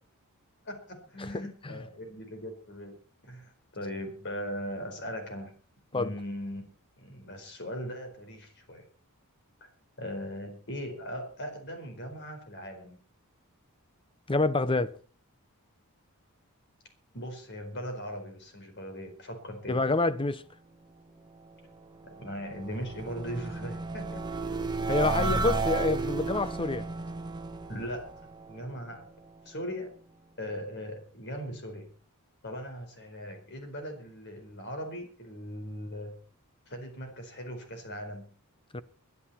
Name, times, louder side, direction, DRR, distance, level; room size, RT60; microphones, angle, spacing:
voice 1, 0.6-3.0 3.2-5.5 5.9-6.6 7.0-8.9 9.6-9.7 10.0-13.0 17.1-19.8 22.0-24.3 25.0-25.6 27.7-28.1 28.5-29.1 29.4-29.9 30.4-31.9 32.4-36.2 36.7-38.3, equal, 50° left, 4.5 m, -39 dB
voice 2, 1.2-1.7 5.9-6.1 14.3-14.9 19.7-20.4 24.9-26.9 38.7-38.8, left 3 dB, 25° left, 0.7 m, -27 dB
sound 1, 21.8-29.0, right 4 dB, 20° right, 1.2 m, -33 dB
21.5 x 11.0 x 4.3 m
head